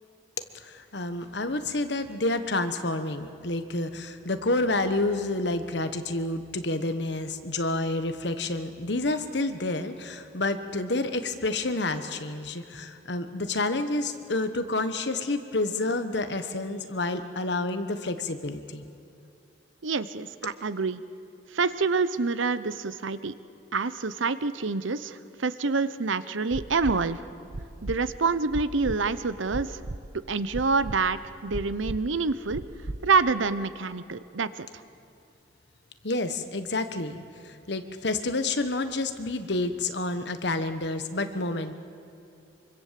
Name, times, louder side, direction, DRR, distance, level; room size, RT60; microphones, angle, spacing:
voice 1, 0.6-18.8 36.0-41.7, left 2 dB, 65° left, 9 dB, 1.3 m, -29 dB
voice 2, 19.8-21.0 21.5-23.3 23.7-27.2 27.8-29.8 30.1-32.7 33.0-34.7, right 4 dB, 85° right, 14 dB, 0.8 m, -27 dB
sound 1, 26.5-27.0 27.5-28.0 28.5-29.0 29.5-30.0 30.5-31.0 31.5-32.0 32.5-33.0 33.5-33.6, right 2 dB, 55° right, 1.0 m, -34 dB
25.0 x 24.5 x 7.6 m, 2.7 s
head